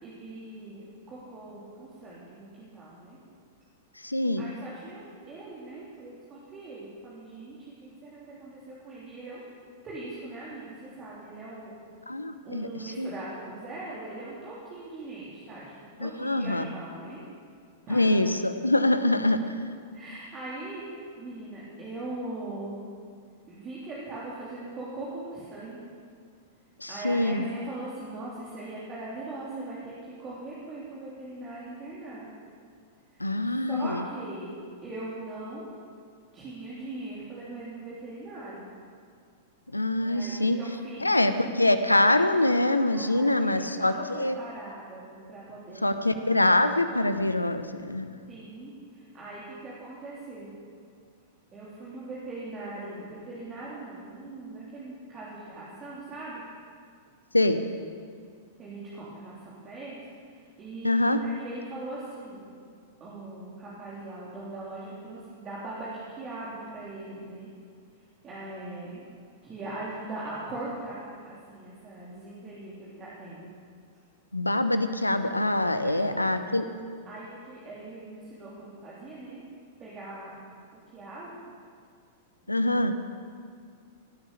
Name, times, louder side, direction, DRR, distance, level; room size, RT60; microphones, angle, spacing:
voice 1, 0.0-3.2 4.4-7.7 8.0-9.5 9.8-11.7 12.4-17.2 17.9-18.1 19.3-19.5 19.9-22.8 23.5-25.8 26.9-29.9 30.2-32.3 33.1-35.6 36.3-38.6 40.0-41.1 42.9-46.0 48.3-50.6 51.5-56.4 58.6-60.0 60.3-62.5 63.0-67.5 68.2-69.1 69.4-73.5 75.6-76.5 77.1-79.4 79.8-80.3 80.9-81.4, right 2 dB, 25° right, -7 dB, 3.4 m, -40 dB
voice 2, 4.0-4.5 12.1-12.7 13.0-13.1 16.0-16.7 17.9-19.4 26.8-27.4 33.2-34.0 39.7-40.6 41.0-44.3 45.8-48.1 57.3-57.6 60.8-61.2 74.3-76.6 82.5-82.9, left 1 dB, 90° left, 10 dB, 0.8 m, -24 dB
17.0 x 9.5 x 6.9 m, 2.1 s
figure-of-eight pair, 95°, 0 cm